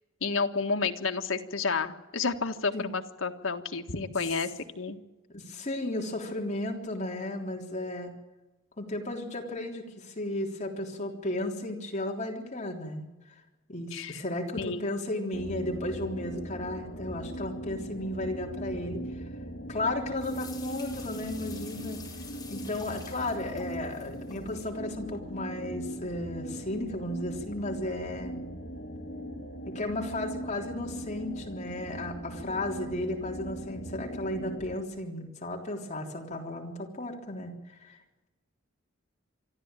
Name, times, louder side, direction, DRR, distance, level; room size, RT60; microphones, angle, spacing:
voice 1, 0.2-4.5 4.8-5.0 13.9-14.2 14.6-14.9, left 4 dB, 80° left, 6 dB, 1.6 m, -30 dB
voice 2, 5.3-8.1 8.8-13.4 13.7-19.0 19.7-22.0 22.5-28.4 29.7-37.6 37.8-38.0, left 1 dB, 35° left, 1 dB, 3.6 m, -34 dB
sound 1, 15.3-34.8, right 1 dB, 55° left, 2.8 m, -39 dB
sound 2, 20.2-24.7, left 5 dB, 20° left, 4.7 m, -48 dB
25.0 x 13.5 x 9.1 m, 1.1 s
head